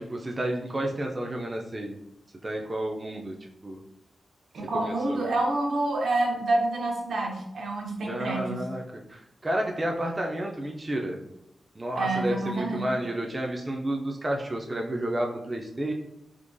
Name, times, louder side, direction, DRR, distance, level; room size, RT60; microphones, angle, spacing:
voice 1, 0.0-1.9 2.4-3.3 3.6-3.8 4.8-5.2 8.1-11.2 11.8-15.9, right 1 dB, 20° right, 1 dB, 0.3 m, -31 dB
voice 2, 4.5-8.6 11.9-12.9, right 2 dB, 80° right, 0 dB, 0.7 m, -28 dB
3.7 x 2.7 x 2.5 m, 0.83 s
wide cardioid pair, 170°, 0 cm